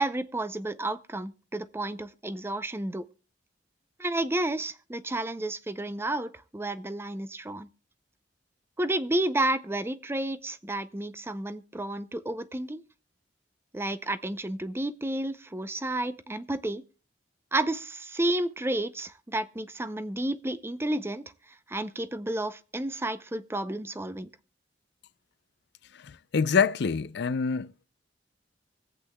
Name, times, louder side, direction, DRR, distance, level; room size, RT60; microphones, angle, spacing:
voice 1, 0.0-3.1 4.0-7.7 8.8-12.8 13.7-16.8 17.5-21.3 21.7-24.3, right 1 dB, 15° right, 0.5 m, -31 dB
voice 2, 26.0-27.7, left 5 dB, 65° left, 0.5 m, -26 dB
24.5 x 8.2 x 2.2 m
head